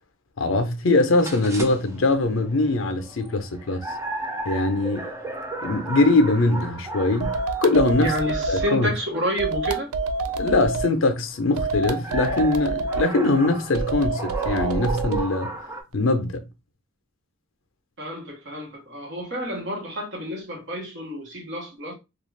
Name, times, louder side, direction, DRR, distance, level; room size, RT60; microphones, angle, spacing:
voice 1, 0.4-3.9 4.5-5.1 5.6-7.3 7.6-8.1 8.5-8.9 10.4-15.5 15.9-16.4, left 2 dB, 65° left, 0.5 m, -22 dB
sound 1, 1.2-15.8, right 2 dB, 15° right, 0.4 m, -36 dB
sound 2, 7.2-8.8 9.4-10.9 11.6-13.1 13.7-15.3, right 3 dB, 85° right, 0.4 m, -27 dB
voice 2, 8.0-9.9 18.0-21.9, equal, 55° right, 1.0 m, -29 dB
2.3 x 2.3 x 3.1 m
head